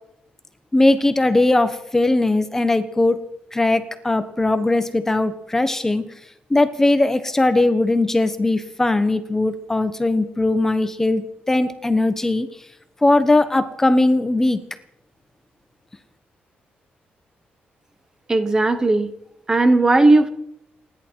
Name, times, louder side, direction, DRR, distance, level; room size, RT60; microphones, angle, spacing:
voice 1, 0.7-3.2 3.5-6.1 6.5-12.5 13.0-14.6, left 2 dB, 10° left, 11 dB, 1.0 m, -19 dB
voice 2, 18.3-19.1 19.5-20.3, right 2 dB, 20° right, 11 dB, 0.9 m, -16 dB
29.0 x 11.0 x 4.5 m, 0.79 s
wide cardioid pair, 160°, 3 cm